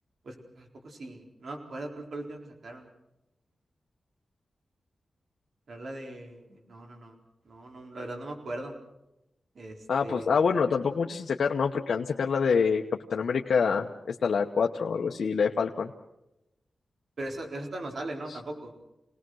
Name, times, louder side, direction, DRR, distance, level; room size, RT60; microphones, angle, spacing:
voice 1, 0.2-2.9 5.7-7.2 7.4-8.8 9.5-10.4 17.2-18.7, right 1 dB, 65° right, 2 dB, 4.2 m, -39 dB
voice 2, 9.9-12.8 13.1-15.9 18.3-18.4, left 5 dB, 80° left, 2 dB, 1.0 m, -26 dB
27.5 x 19.0 x 6.4 m, 0.89 s
wide cardioid pair, 85°, 0 cm